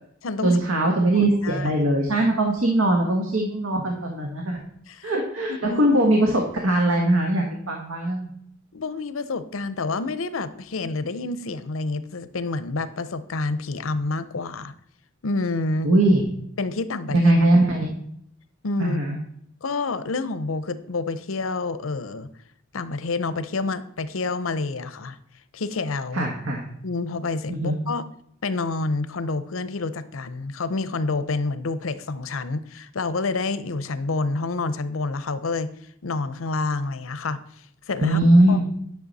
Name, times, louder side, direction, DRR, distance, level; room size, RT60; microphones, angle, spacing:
voice 1, 0.4-4.6 5.0-8.3 15.8-16.2 17.1-17.9 18.8-19.2 26.1-26.6 27.5-27.8 38.0-38.6, right 1 dB, 85° right, 1 dB, 1.3 m, -20 dB
voice 2, 1.1-1.7 4.9-5.1 5.5-6.0 8.7-14.7 15.2-15.9 16.6-17.3 18.6-19.0 19.6-22.3 22.7-25.2 25.5-26.3 26.8-28.0 28.4-35.7 36.0-37.4 37.9-38.2 38.5-38.6, left 3 dB, 90° left, 14 dB, 0.7 m, -28 dB
10.5 x 6.6 x 4.1 m, 0.70 s
head